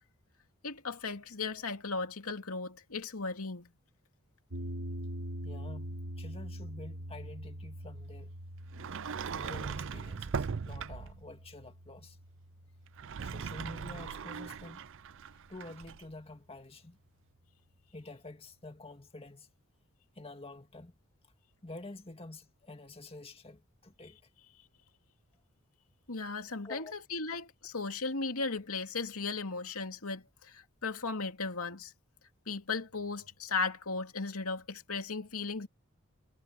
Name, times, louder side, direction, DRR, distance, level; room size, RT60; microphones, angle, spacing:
voice 1, 0.6-3.7 26.1-31.9 32.5-35.7, left 4 dB, 80° left, 2.6 m, -36 dB
sound 1, 4.5-14.7, equal, 85° right, 2.4 m, -44 dB
voice 2, 5.4-8.3 9.3-12.2 13.2-14.8 15.5-17.0 17.9-19.5 20.2-20.9 21.6-24.2 26.6-26.9, left 2 dB, 25° left, 2.0 m, -48 dB
Sliding door, 8.7-11.2 12.9-16.0, right 6 dB, 60° right, 0.5 m, -39 dB
head